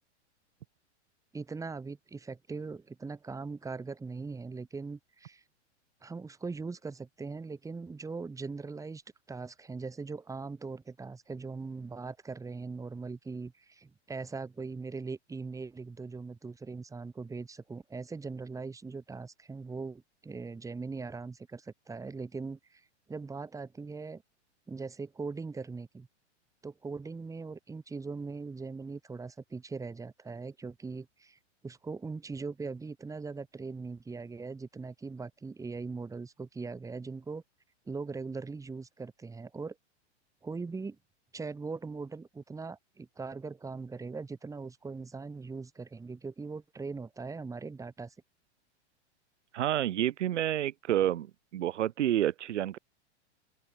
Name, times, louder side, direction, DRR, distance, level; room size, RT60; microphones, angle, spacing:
voice 1, 1.3-5.4 6.0-9.0 9.3-24.2 24.7-26.1 26.6-37.4 37.9-39.8 40.4-41.0 41.3-48.1, right 4 dB, 10° right, 1.4 m, -40 dB
voice 2, 49.5-52.8, right 12 dB, 85° right, 0.8 m, -29 dB
open air
hypercardioid pair, 115°, 35 cm